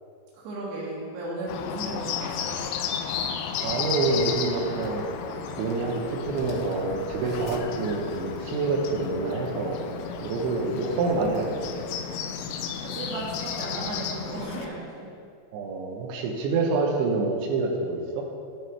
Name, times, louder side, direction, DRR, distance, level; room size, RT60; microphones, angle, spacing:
voice 1, 0.3-2.6 12.8-15.1, right 2 dB, 65° right, -6 dB, 3.9 m, -35 dB
Bird, 1.5-14.7, left 7 dB, 85° left, 2.9 m, -33 dB
voice 2, 3.6-5.0 5.6-9.8 10.2-11.6 15.5-18.3, right 3 dB, 85° right, 0 dB, 3.2 m, -27 dB
11.0 x 6.4 x 4.5 m, 2.4 s
omnidirectional pair, 5.2 m